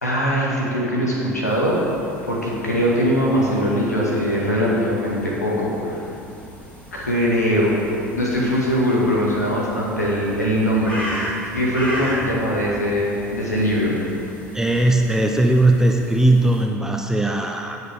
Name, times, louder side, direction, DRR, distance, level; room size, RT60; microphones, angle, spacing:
voice 1, 0.0-1.8 2.3-6.0 6.9-7.8 8.2-11.0 11.5-14.0, equal, 85° left, -4 dB, 1.9 m, -21 dB
sound 1, 1.4-16.6, equal, 15° left, 2.6 m, -37 dB
voice 2, 14.5-17.8, right 1 dB, 5° right, 2 dB, 0.7 m, -18 dB
17.0 x 6.6 x 3.6 m, 2.7 s
figure-of-eight pair, 65°, 9 cm